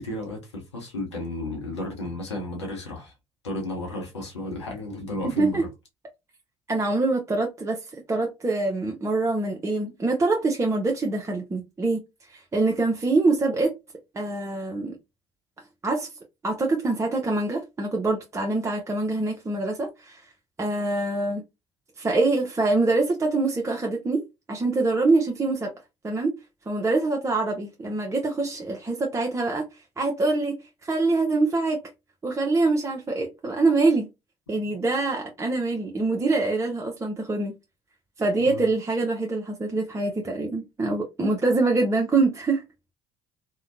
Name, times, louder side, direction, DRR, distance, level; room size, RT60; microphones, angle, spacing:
voice 1, 0.0-3.1 3.4-5.7 38.4-38.6, left 1 dB, 90° left, 0.8 m, -33 dB
voice 2, 5.2-5.6 6.7-7.8 8.1-13.7 14.1-15.0 15.8-16.1 16.4-20.3 20.6-21.4 22.0-24.2 24.5-25.7 26.0-26.4 26.7-31.8 32.2-34.1 34.5-37.5 38.2-42.6, right 3 dB, 20° right, 0.6 m, -25 dB
2.7 x 2.1 x 2.5 m
hypercardioid pair, 55°, 14 cm